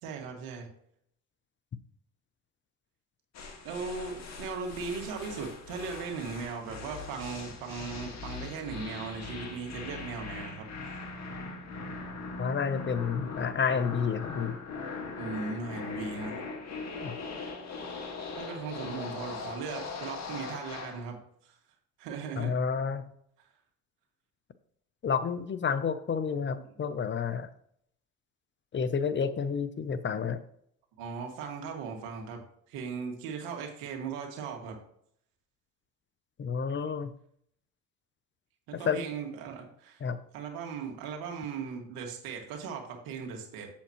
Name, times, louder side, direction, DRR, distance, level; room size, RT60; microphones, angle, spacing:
voice 1, 0.0-0.7 3.6-10.7 15.2-16.4 18.4-21.6 22.0-22.5 26.6-26.8 31.0-32.4 32.7-34.8 38.7-40.0 40.3-43.7, right 5 dB, 80° right, 2 dB, 2.1 m, -38 dB
sound 1, 3.3-21.0, left 4 dB, 50° left, 1.8 m, -40 dB
voice 2, 12.4-14.6 17.0-17.2 22.4-23.0 25.0-27.5 28.7-30.4 36.4-37.1 38.7-39.0 40.0-40.2, left 6 dB, 35° left, 12 dB, 0.7 m, -30 dB
8.0 x 7.2 x 3.0 m, 0.69 s
supercardioid pair, 85°, 35 cm